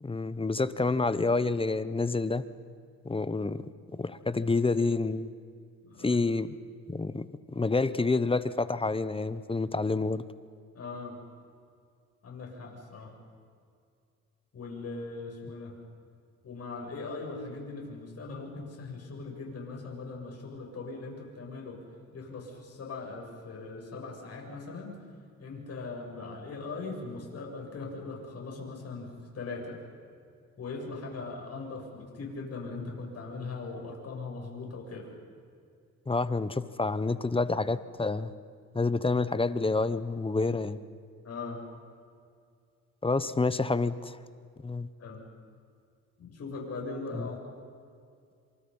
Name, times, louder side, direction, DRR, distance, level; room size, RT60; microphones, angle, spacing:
voice 1, 0.0-2.4 3.0-3.6 4.0-5.3 6.0-6.5 6.9-10.2 36.1-38.3 38.7-40.8 43.0-44.2 44.6-44.9 47.1-47.3, left 3 dB, 20° left, 14 dB, 1.0 m, -28 dB
voice 2, 5.8-6.2 10.7-11.2 12.2-13.1 14.5-15.8 16.4-24.9 25.4-29.8 30.6-35.1 41.2-41.6 45.0-45.2 46.2-47.4, left 3 dB, 55° left, 0 dB, 7.8 m, -40 dB
28.0 x 27.0 x 5.6 m, 2.3 s
cardioid pair, 90°, 30 cm